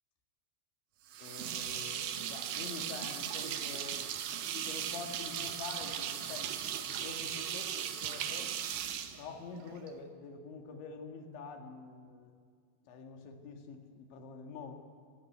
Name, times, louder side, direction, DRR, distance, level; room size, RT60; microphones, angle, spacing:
sound 1, 1.1-9.9, right 9 dB, 70° right, 2.1 m, -38 dB
voice 1, 1.2-6.5 6.8-8.5 9.2-12.3 12.9-14.8, left 4 dB, 80° left, 4 dB, 4.2 m, -46 dB
27.0 x 14.0 x 9.4 m, 2.1 s
omnidirectional pair, 5.2 m